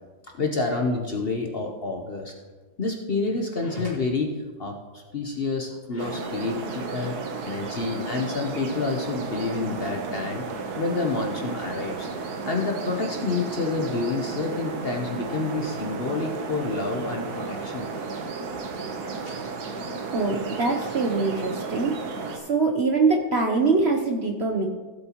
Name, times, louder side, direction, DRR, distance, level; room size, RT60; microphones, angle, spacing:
voice 1, 0.4-2.3 2.8-4.3 4.6-7.2 7.4-10.5 10.8-12.1 12.5-17.9 19.2-19.4, left 3 dB, 45° left, 2 dB, 0.9 m, -28 dB
sound 1, 6.0-22.4, right 4 dB, 70° right, 1.6 m, -33 dB
voice 2, 20.1-22.0 22.3-24.7, right 3 dB, 50° right, 3 dB, 0.9 m, -23 dB
16.5 x 7.7 x 3.0 m, 1.3 s
omnidirectional pair, 1.8 m